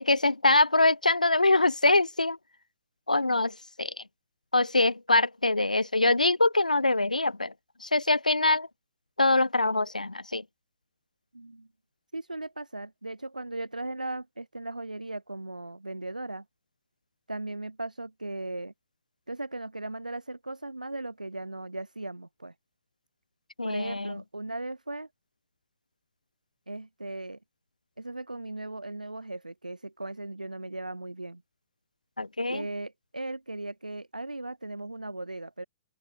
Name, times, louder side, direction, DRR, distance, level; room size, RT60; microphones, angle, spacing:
voice 1, 0.0-2.4 3.1-3.9 4.5-7.5 7.8-8.7 9.2-10.4 23.6-24.2 32.2-32.6, left 2 dB, 85° left, 2.9 m, -24 dB
voice 2, 11.3-11.7 12.1-16.4 17.3-18.7 19.3-22.5 23.6-25.1 26.7-27.4 28.0-31.4 32.5-35.6, right 2 dB, 85° right, 8.0 m, -37 dB
open air
figure-of-eight pair, 110°, 4 cm